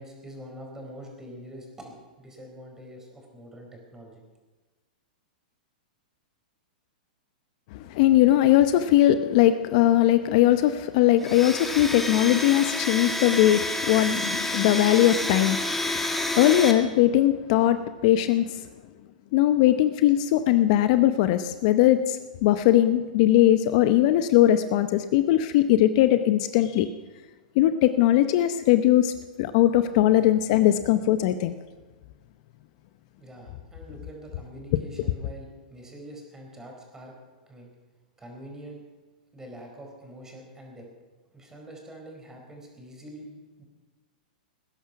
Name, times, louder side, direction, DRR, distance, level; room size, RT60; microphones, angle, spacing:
voice 1, 0.0-4.2 33.2-37.1 37.5-37.7 38.2-38.8 39.3-40.9 41.3-43.6, right 1 dB, 10° right, 0 dB, 4.6 m, -44 dB
voice 2, 7.7-15.6 15.9-18.5 19.3-26.9 27.6-29.1 29.4-31.5, left 13 dB, 50° left, 11 dB, 0.8 m, -20 dB
Domestic sounds home sounds, 11.2-16.7, left 1 dB, 5° left, 1.6 m, -29 dB
19.5 x 10.5 x 5.8 m, 1.3 s
hypercardioid pair, 120°, 5 cm